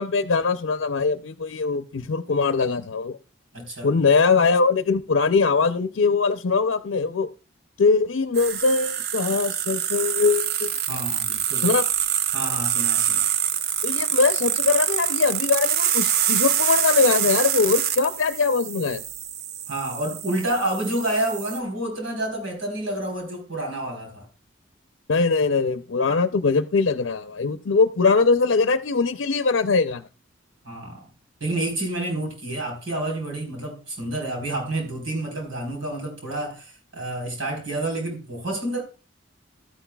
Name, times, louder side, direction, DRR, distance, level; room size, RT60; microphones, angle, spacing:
voice 1, 0.0-3.2 3.8-7.3 7.8-10.7 11.6-11.8 13.8-19.0 25.1-30.0, left 4 dB, 80° left, 0.6 m, -21 dB
voice 2, 3.5-3.9 10.9-11.7 12.3-13.2 19.7-24.2 30.6-31.1 31.4-38.8, right 1 dB, 85° right, 4.2 m, -29 dB
sound 1, 8.3-21.6, right 10 dB, 50° right, 0.5 m, -25 dB
13.0 x 9.9 x 2.3 m
head